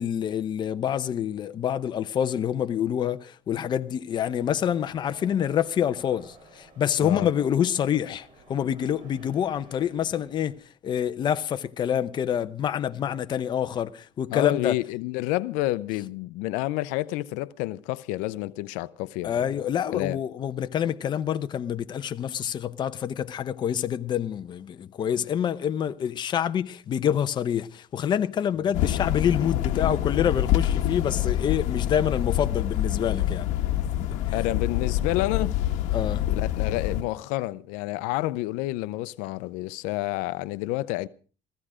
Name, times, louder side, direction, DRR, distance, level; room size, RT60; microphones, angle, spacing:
voice 1, 0.0-10.5 10.8-14.7 19.2-33.5 34.0-34.2 35.9-36.3, left 9 dB, 35° left, 0.8 m, -27 dB
sound 1, 4.3-10.6, right 3 dB, 40° right, 7.9 m, -52 dB
voice 2, 14.3-19.3 19.9-20.2 34.3-35.6 36.3-41.1, left 18 dB, 85° left, 0.6 m, -29 dB
sound 2, 28.7-37.0, left 12 dB, 70° left, 1.3 m, -26 dB
16.0 x 14.5 x 4.9 m
cardioid pair, 140°, 13 cm